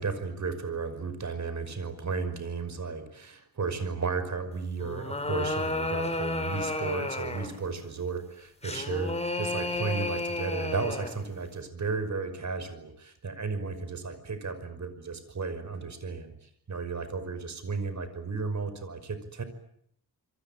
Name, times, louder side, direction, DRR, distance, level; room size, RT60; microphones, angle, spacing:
voice 1, 0.0-19.4, right 4 dB, 45° right, 11 dB, 5.6 m, -34 dB
sound 1, 4.8-7.6 8.6-11.2, left 2 dB, 15° left, 4.9 m, -32 dB
28.0 x 23.0 x 8.9 m, 0.72 s
wide cardioid pair, 115°, 38 cm